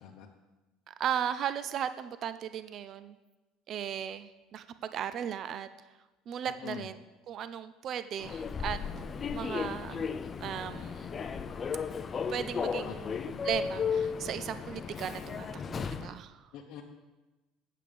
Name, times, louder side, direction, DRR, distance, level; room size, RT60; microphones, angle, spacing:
voice 1, 0.9-3.2 3.7-5.7 6.3-7.0 7.3-8.8 9.3-10.1 10.4-11.2 12.3-16.5, right 9 dB, 45° right, 12 dB, 0.4 m, -36 dB
voice 2, 6.5-6.9 12.8-13.2 16.5-16.8, left 8 dB, 60° left, 0 dB, 0.8 m, -43 dB
Human voice / Subway metro underground, 8.2-16.2, left 6 dB, 25° left, 0.4 m, -35 dB
8.5 x 7.5 x 5.1 m, 1.1 s
cardioid pair, 140°, 0 cm